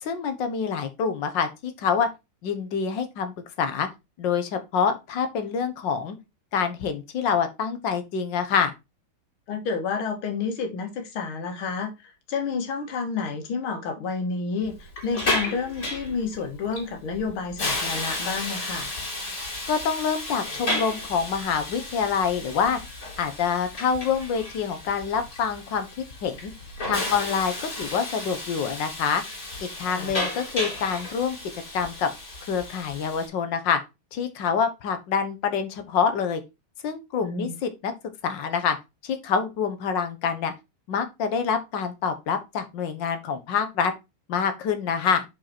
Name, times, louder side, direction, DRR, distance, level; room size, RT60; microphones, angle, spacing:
voice 1, 0.0-2.1 2.4-3.9 4.2-6.2 6.5-8.7 19.7-22.8 23.2-25.9 26.2-26.5 26.9-29.2 29.6-31.4 31.7-32.1 32.5-33.8 34.1-36.4 36.8-37.9 38.2-38.8 39.0-40.5 40.9-43.9 44.3-45.2, left 6 dB, 65° left, 1.7 m, -26 dB
voice 2, 9.5-18.9 29.9-30.2 37.2-37.6, left 5 dB, 85° left, 2.3 m, -30 dB
Hiss, 14.7-33.3, left 2 dB, 45° left, 3.2 m, -33 dB
5.9 x 5.3 x 4.2 m
omnidirectional pair, 2.3 m